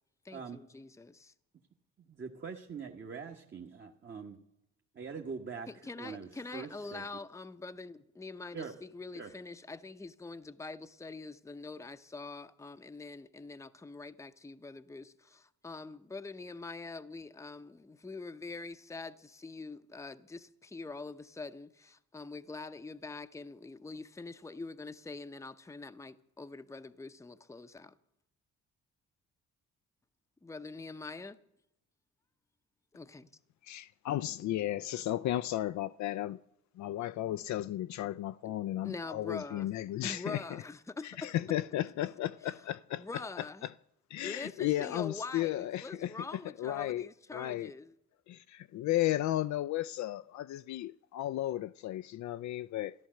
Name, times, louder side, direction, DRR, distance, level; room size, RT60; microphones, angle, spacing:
voice 1, 0.2-1.3 5.7-27.9 30.4-31.4 32.9-33.3 38.4-38.5 38.8-39.7 40.0-41.3 42.4-42.6 42.9-43.7 44.2-48.0, left 3 dB, 10° left, 0.7 m, -44 dB
voice 2, 2.0-4.4 4.9-5.7 6.0-7.0 8.5-8.7 9.1-9.3, right 5 dB, 40° right, 1.3 m, -43 dB
voice 3, 33.6-36.4 36.8-40.4 41.0-43.0 44.1-46.1 46.6-47.1 47.3-47.7 48.3-52.9, left 14 dB, 70° left, 0.4 m, -34 dB
14.0 x 11.5 x 7.7 m
cardioid pair, 90°, 30 cm